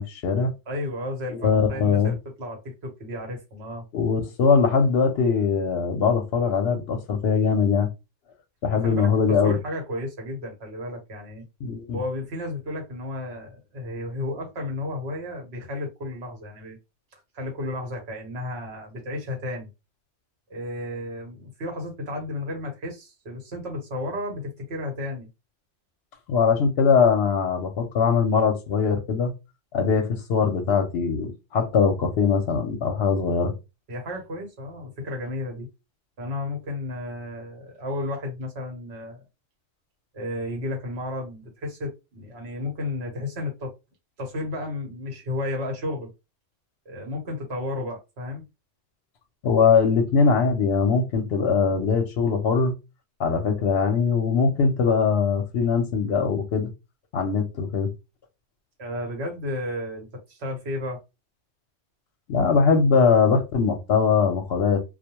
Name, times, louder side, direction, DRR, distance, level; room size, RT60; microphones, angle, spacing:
voice 1, 0.0-0.5 1.3-2.1 3.9-7.9 8.6-9.6 11.6-12.0 26.3-29.3 29.7-33.5 49.4-52.7 53.2-56.7 57.1-57.9 62.3-64.8, left 5 dB, 65° left, 0.8 m, -21 dB
voice 2, 0.7-3.8 8.7-11.4 11.9-16.8 17.3-19.7 20.5-25.3 33.9-35.7 36.2-39.2 40.1-43.7 44.2-46.1 46.8-48.4 58.8-61.0, left 1 dB, 65° right, 1.2 m, -33 dB
2.3 x 2.1 x 2.9 m
omnidirectional pair, 1.2 m